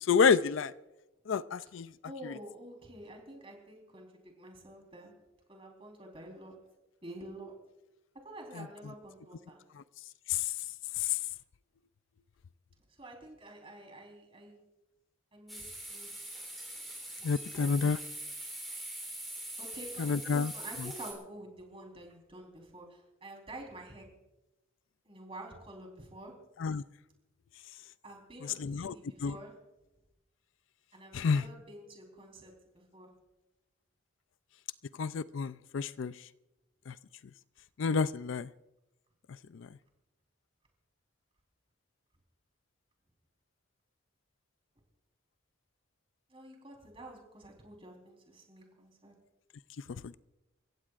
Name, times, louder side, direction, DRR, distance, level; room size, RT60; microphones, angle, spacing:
voice 1, 0.1-0.7 1.3-1.9 10.3-10.4 11.0-11.2 17.2-18.0 20.0-20.5 26.6-26.8 28.4-29.0 29.2-29.4 31.1-31.4 35.0-36.1 36.9-37.0 37.8-38.5 39.6-39.7, left 5 dB, 65° left, 15 dB, 0.4 m, -29 dB
voice 2, 2.0-5.1 5.5-6.5 7.0-7.5 8.2-9.6 13.0-14.6 15.3-16.1 17.2-17.6 19.6-24.1 25.0-26.3 28.0-29.5 30.9-33.1 46.3-49.1, right 1 dB, 25° right, 1 dB, 4.0 m, -49 dB
sound 1, 15.5-21.1, right 1 dB, ahead, 3.5 m, -43 dB
29.5 x 15.5 x 2.5 m, 0.99 s
head